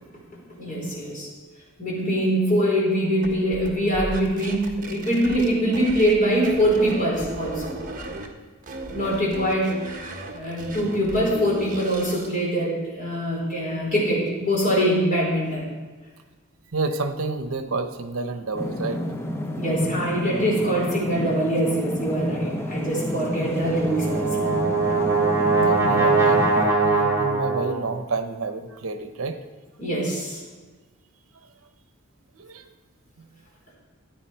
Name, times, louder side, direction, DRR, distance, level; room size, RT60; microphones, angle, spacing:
voice 1, 0.5-1.3 1.8-7.8 8.9-9.7 10.3-15.7 19.6-24.6 29.8-30.4, equal, 40° left, -4 dB, 4.6 m, -23 dB
sound 1, 3.2-6.2 6.4-8.3 8.6-12.3, right 1 dB, 40° right, 1.5 m, -36 dB
voice 2, 16.7-19.0 25.6-29.4 32.3-32.6, right 3 dB, 75° right, 8 dB, 0.9 m, -29 dB
sound 2, 18.5-26.7, left 1 dB, 10° left, 0.7 m, -30 dB
Brass instrument, 23.6-27.9, right 3 dB, 15° right, 3.1 m, -21 dB
14.5 x 9.5 x 4.5 m, 1.3 s
head